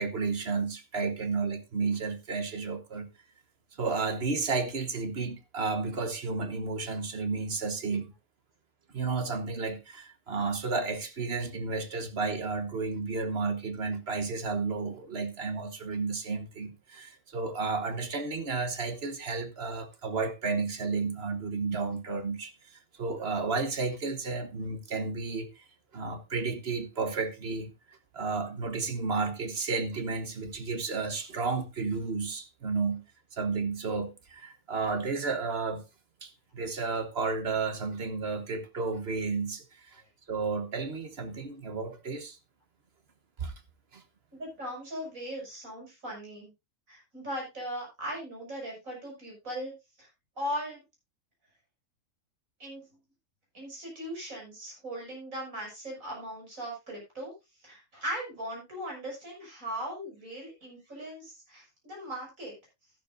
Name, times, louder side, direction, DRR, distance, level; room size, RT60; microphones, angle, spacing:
voice 1, 0.0-3.1 3.8-8.1 8.9-25.6 25.9-27.7 28.1-33.0 33.3-35.8 36.2-40.0 40.3-42.4 43.4-43.5 43.9-44.0, right 4 dB, 50° right, 1.4 m, -32 dB
voice 2, 44.3-46.5 46.9-50.1 50.4-50.8 52.6-52.8 53.5-57.3 57.6-62.6, equal, 80° right, 6.7 m, -38 dB
12.5 x 11.5 x 2.6 m
omnidirectional pair, 1.4 m